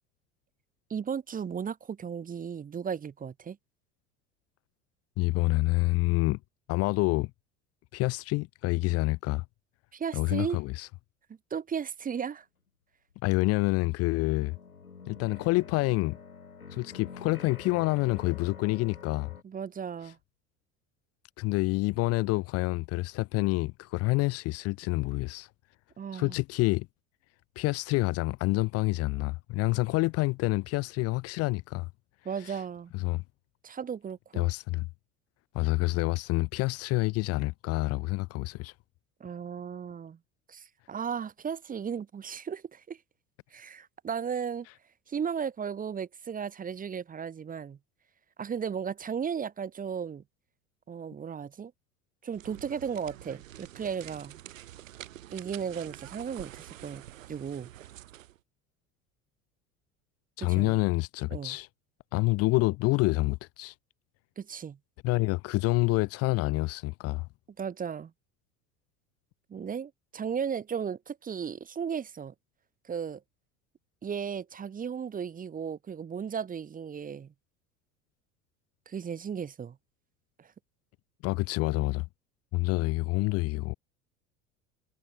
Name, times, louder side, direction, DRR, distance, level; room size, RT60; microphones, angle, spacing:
voice 1, 0.9-3.6 9.9-10.6 11.5-12.4 19.4-20.2 26.0-26.3 32.2-32.9 33.6-34.5 39.2-40.2 40.5-43.0 43.5-44.7 45.1-47.8 48.4-50.2 50.9-51.7 52.2-54.3 55.3-57.0 57.3-57.7 60.4-60.8 61.3-61.6 64.4-64.8 67.6-68.1 69.5-72.3 72.8-73.2 74.0-77.3 78.9-79.8 80.4-80.5, right 7 dB, 20° right, 1.1 m, -35 dB
voice 2, 5.2-6.4 6.7-7.3 7.9-9.4 10.1-10.9 13.2-14.6 15.1-16.2 16.7-19.3 21.4-25.5 26.1-26.9 27.6-31.9 32.4-32.6 32.9-33.2 34.4-34.9 35.5-38.7 60.4-61.7 62.1-63.7 65.0-67.3 81.2-82.0 82.5-83.7, left 22 dB, 35° left, 0.6 m, -27 dB
sound 1, 13.1-13.2 13.6-19.4, left 5 dB, 90° left, 0.8 m, -47 dB
sound 2, 52.3-58.4, right 13 dB, 65° right, 1.6 m, -47 dB
figure-of-eight pair, 70°, 42 cm